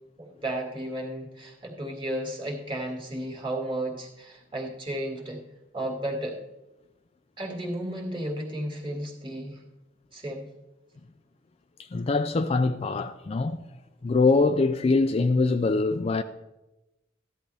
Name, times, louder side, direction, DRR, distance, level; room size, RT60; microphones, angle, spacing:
voice 1, 0.2-5.4 5.7-6.4 7.4-9.6 10.1-10.5, right 1 dB, 25° right, 2.1 m, -33 dB
voice 2, 11.9-13.6 14.0-16.2, left 3 dB, 30° left, 0.4 m, -23 dB
14.0 x 11.0 x 3.4 m
head